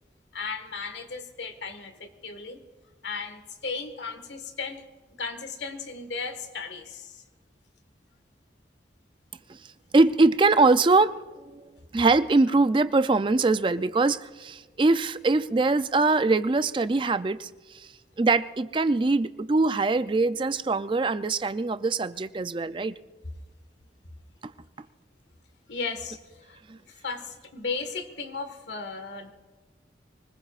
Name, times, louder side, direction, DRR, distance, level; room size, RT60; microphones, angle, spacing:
voice 1, 0.3-2.6 3.0-4.8 5.2-7.2 25.7-26.2 26.5-26.6 27.0-29.3, left 4 dB, 80° left, 7 dB, 1.6 m, -35 dB
voice 2, 9.9-11.6 11.9-17.9 18.2-23.0 24.4-24.5 26.7-26.8, right 3 dB, 25° right, 13 dB, 0.4 m, -23 dB
24.5 x 20.0 x 2.4 m, 1.4 s
head